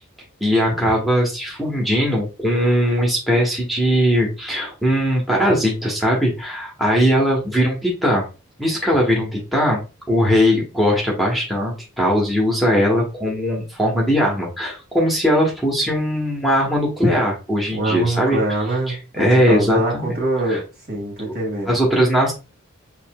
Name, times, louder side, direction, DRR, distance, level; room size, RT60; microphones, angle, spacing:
voice 1, 0.4-8.2 8.6-9.8 10.1-18.4 18.9-20.2 20.5-20.6 21.7-22.3, equal, ahead, -2 dB, 1.0 m, -19 dB
voice 2, 17.7-20.6 20.9-21.8, right 1 dB, 45° right, 0 dB, 1.8 m, -24 dB
6.4 x 2.7 x 2.2 m, 0.31 s
head